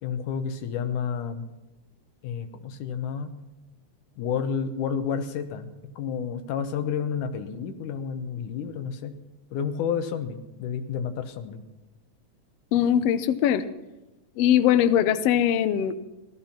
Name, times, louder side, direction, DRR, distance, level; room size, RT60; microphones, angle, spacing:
voice 1, 0.0-1.4 2.2-3.3 4.2-9.2 9.5-11.6, left 7 dB, 90° left, 8 dB, 2.6 m, -30 dB
voice 2, 12.7-13.6 14.4-16.0, left 10 dB, 70° left, 12 dB, 1.6 m, -21 dB
17.0 x 13.0 x 5.9 m, 1.0 s
omnidirectional pair, 3.5 m